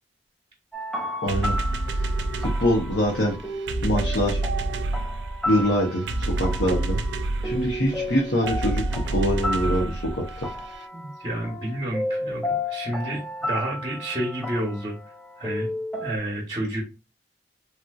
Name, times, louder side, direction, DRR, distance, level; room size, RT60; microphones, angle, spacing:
sound 1, 0.7-16.2, left 1 dB, ahead, 0.4 m, -33 dB
voice 1, 1.2-1.5 2.4-3.4 3.8-4.4 5.5-6.0 6.4-7.0 7.4-10.2, equal, 80° left, -2 dB, 0.8 m, -24 dB
sound 2, 1.3-10.8, right 2 dB, 85° right, 0.4 m, -29 dB
voice 2, 10.9-14.9 15.4-15.7 16.0-16.8, right 1 dB, 30° right, -2 dB, 0.8 m, -30 dB
3.3 x 2.7 x 2.3 m, 0.29 s
head